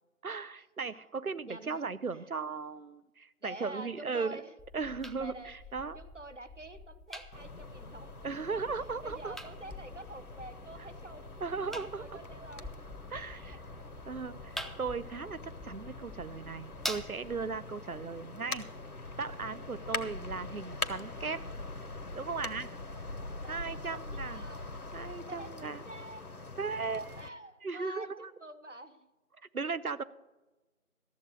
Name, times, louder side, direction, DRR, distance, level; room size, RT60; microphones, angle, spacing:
voice 1, 0.2-4.4 4.7-6.0 8.2-9.3 11.4-12.0 13.1-13.6 14.1-18.7 19.2-21.4 22.1-22.7 23.4-24.5 24.9-25.8 26.6-27.2 27.6-28.3 29.5-30.0, right 4 dB, 75° right, 16 dB, 0.8 m, -37 dB
voice 2, 1.5-1.8 2.1-2.3 3.4-4.5 5.2-5.5 5.9-8.2 8.5-8.6 9.0-11.3 12.0-12.7 13.4-13.8 23.4-24.7 25.3-26.3 27.2-29.1, right 1 dB, 55° right, 11 dB, 1.0 m, -47 dB
sound 1, 4.6-17.6, equal, ahead, 0.5 m, -46 dB
sound 2, 7.3-27.3, left 2 dB, 85° left, 1.1 m, -43 dB
13.5 x 7.2 x 6.5 m, 1.1 s
figure-of-eight pair, 175°, 44 cm